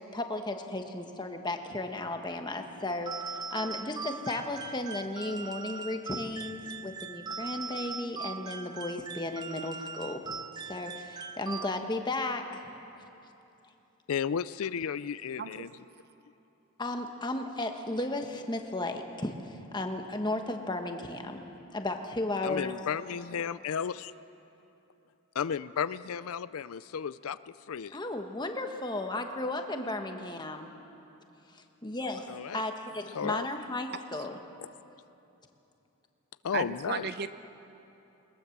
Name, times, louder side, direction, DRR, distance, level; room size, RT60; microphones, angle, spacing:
voice 1, 0.1-10.2 10.7-12.6 16.8-22.8 27.9-30.7 31.8-32.3 32.5-34.4, left 2 dB, 20° left, 5 dB, 1.2 m, -34 dB
sound 1, 3.1-12.1, right 5 dB, 20° right, 0.4 m, -40 dB
voice 2, 14.1-15.7 22.4-24.1 25.3-27.4 27.7-28.0 32.3-32.6 33.1-33.5 36.4-37.1, left 7 dB, 70° left, 16 dB, 0.4 m, -33 dB
voice 3, 36.5-37.3, right 5 dB, 45° right, 11 dB, 0.7 m, -34 dB
21.0 x 20.0 x 7.2 m, 3.0 s
head